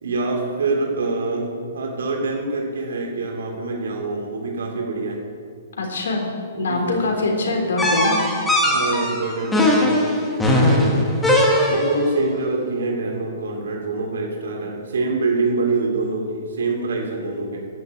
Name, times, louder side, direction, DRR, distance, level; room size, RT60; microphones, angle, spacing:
voice 1, 0.0-5.2 6.5-7.1 8.6-11.1 11.7-17.6, right 3 dB, 85° right, -1 dB, 2.7 m, -25 dB
voice 2, 5.8-6.3 6.6-8.2, left 2 dB, 90° left, 1 dB, 3.5 m, -23 dB
sound 1, 7.8-12.1, left 1 dB, 5° left, 1.3 m, -19 dB
10.5 x 7.6 x 9.4 m, 2.2 s
hypercardioid pair, 175°, 0 cm